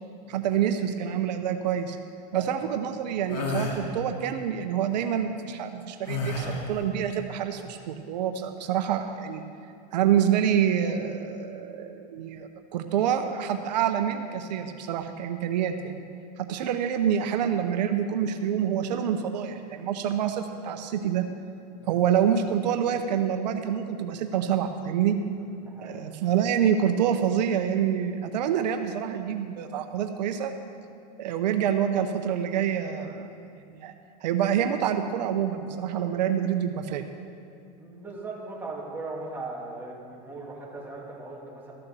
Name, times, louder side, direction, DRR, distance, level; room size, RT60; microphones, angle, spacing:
voice 1, 0.3-2.0 2.3-9.4 9.9-16.1 16.4-21.2 21.9-25.2 25.8-30.5 31.2-33.3 33.7-33.9 34.2-37.0, right 9 dB, 85° right, 7 dB, 0.8 m, -27 dB
sound 1, 3.3-3.8 6.1-6.8, left 2 dB, 80° left, 2.3 m, -30 dB
voice 2, 25.4-26.0 37.8-41.7, right 3 dB, 10° right, -5 dB, 2.7 m, -39 dB
14.0 x 6.9 x 6.9 m, 2.5 s
supercardioid pair, 125°, 21 cm